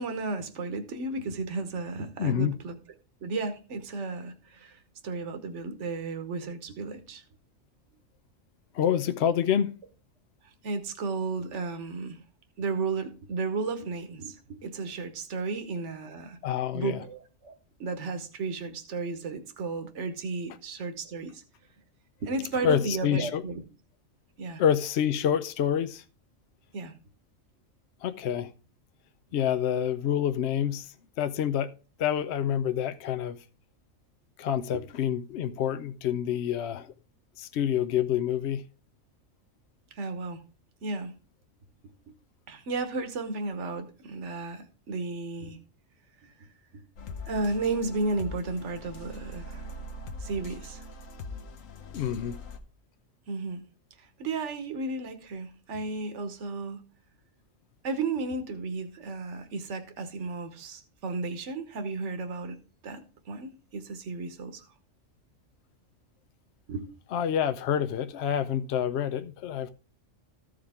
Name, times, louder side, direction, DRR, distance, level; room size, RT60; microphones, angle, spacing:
voice 1, 0.0-2.8 3.2-7.2 10.6-12.2 12.6-16.4 16.7-17.5 17.8-21.4 22.2-23.6 24.4-24.6 26.7-26.9 39.9-40.4 40.8-41.1 42.5-45.6 46.2-46.3 47.3-49.7 50.2-50.8 53.3-53.6 54.0-56.8 57.8-62.6 62.8-64.6 66.7-66.9, right 3 dB, 65° right, 1.4 m, -33 dB
voice 2, 2.2-2.6 8.7-9.7 16.4-17.0 22.6-23.4 24.6-26.0 28.0-28.5 29.3-31.7 32.0-33.4 34.4-36.9 37.4-38.6 51.9-52.4 67.1-69.7, left 9 dB, 65° left, 0.8 m, -27 dB
sound 1, 47.0-52.6, left 2 dB, 85° left, 1.3 m, -42 dB
14.0 x 5.0 x 3.5 m
omnidirectional pair, 1.3 m